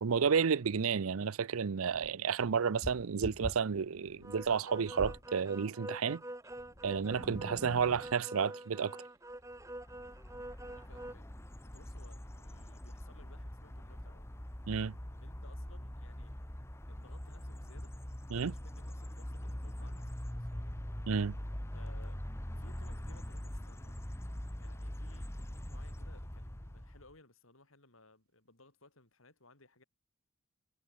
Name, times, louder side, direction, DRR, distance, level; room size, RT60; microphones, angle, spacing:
voice 1, 0.0-6.2 6.8-9.0 14.7-15.0 18.3-18.5 21.1-21.4, right 6 dB, 85° right, 0.6 m, -31 dB
sound 1, 1.9-5.3 6.5-8.2, equal, 30° left, 2.4 m, -46 dB
sound 2, 4.2-11.1, right 1 dB, 15° right, 2.6 m, -46 dB
sound 3, 9.5-27.1, equal, 10° left, 1.1 m, -43 dB
voice 2, 10.7-11.3 11.6-14.3 15.0-16.4 16.9-17.9 18.4-20.7 21.7-22.2 22.5-24.0 24.6-29.8, left 2 dB, 75° left, 5.9 m, -61 dB
head